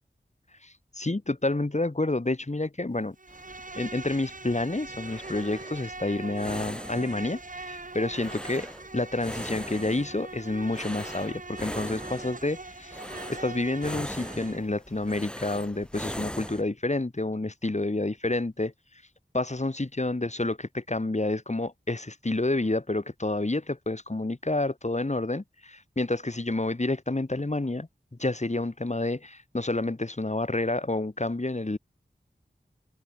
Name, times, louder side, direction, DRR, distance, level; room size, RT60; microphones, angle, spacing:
voice 1, 0.6-3.2 3.7-13.0 13.3-18.7 19.3-27.9 28.2-31.8, left 2 dB, 40° left, 5.5 m, -29 dB
Insect, 3.2-14.6, right 3 dB, 50° right, 2.6 m, -42 dB
sound 1, 3.3-16.6, equal, 5° left, 3.7 m, -41 dB
wide cardioid pair, 65°, 18 cm